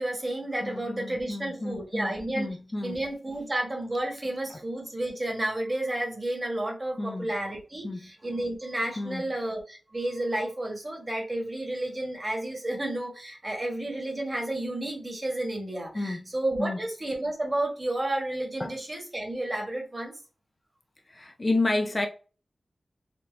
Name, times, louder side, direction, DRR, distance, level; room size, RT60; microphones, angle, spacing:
voice 1, 0.0-2.5 2.8-20.1, right 1 dB, 30° right, 1.4 m, -31 dB
voice 2, 0.6-3.0 7.0-7.3 7.8-8.1 9.0-9.3 15.9-16.3 16.6-16.8 18.6-18.7 21.1-22.1, left 2 dB, 35° left, 0.5 m, -31 dB
4.3 x 2.7 x 3.2 m
wide cardioid pair, 105°, 0 cm